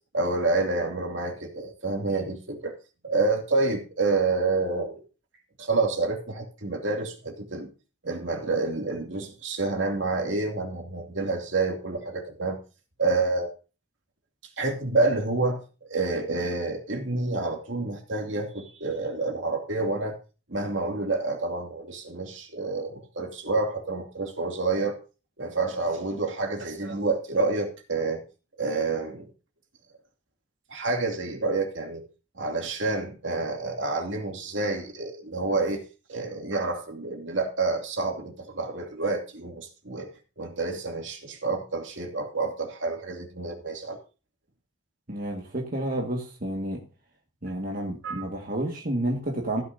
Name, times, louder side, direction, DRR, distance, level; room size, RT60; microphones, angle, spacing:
voice 1, 0.1-2.7 3.0-5.0 5.6-7.7 8.0-12.6 13.0-13.5 14.6-15.6 15.9-20.2 20.5-25.0 25.4-28.2 28.6-29.3 30.7-32.0 32.3-35.8 36.1-40.1 40.4-44.0 48.0-48.2, right 3 dB, 70° right, 2 dB, 2.6 m, -28 dB
voice 2, 45.1-46.8 47.4-49.6, right 1 dB, 45° right, -1 dB, 1.9 m, -30 dB
15.5 x 10.0 x 2.7 m, 0.33 s
head